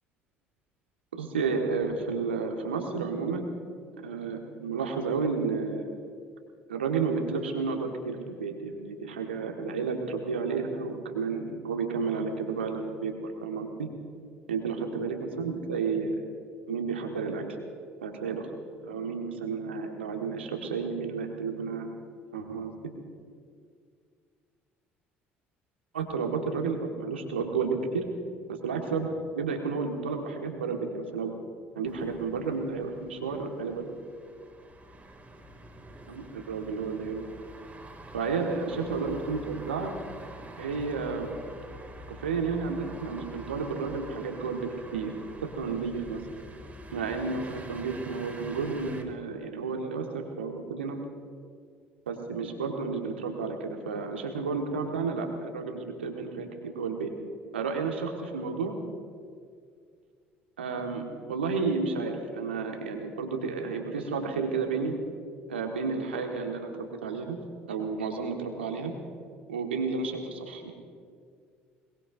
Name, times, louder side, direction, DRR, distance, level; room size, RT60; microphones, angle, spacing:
voice 1, 1.1-3.5 4.0-5.9 6.7-13.9 14.5-16.2 16.7-17.4 18.0-18.5 18.7-21.9 22.3-22.7 25.9-28.0 28.5-31.3 31.7-33.9 36.1-37.2 38.1-39.9 40.6-41.3 42.1-45.1 45.4-46.2 46.9-51.0 52.1-56.5 56.7-57.1 57.5-58.7 60.6-65.0 65.5-67.4 67.7-68.9 69.5-70.7, right 5 dB, 80° right, 3 dB, 1.6 m, -31 dB
sound 1, 31.8-49.0, right 1 dB, 20° right, 2.3 m, -46 dB
22.0 x 21.5 x 2.6 m, 2.2 s
figure-of-eight pair, 55°, 6 cm